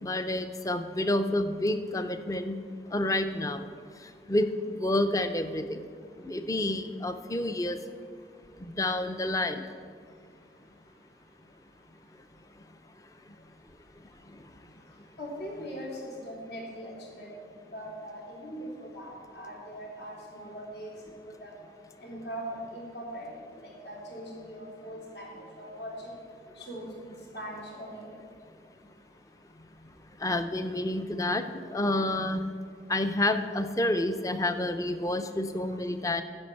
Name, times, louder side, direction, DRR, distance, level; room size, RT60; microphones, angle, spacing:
voice 1, 0.0-2.6 2.9-3.7 4.3-4.5 4.8-5.8 6.2-7.8 8.6-9.7 30.2-31.5 31.7-32.4 32.9-36.2, left 1 dB, 20° left, 9 dB, 0.5 m, -29 dB
voice 2, 15.2-21.1 21.4-21.5 22.0-23.2 23.6-26.1 26.5-27.0 27.3-28.1, equal, 75° left, -4 dB, 3.3 m, -41 dB
9.8 x 7.0 x 7.8 m, 2.1 s
head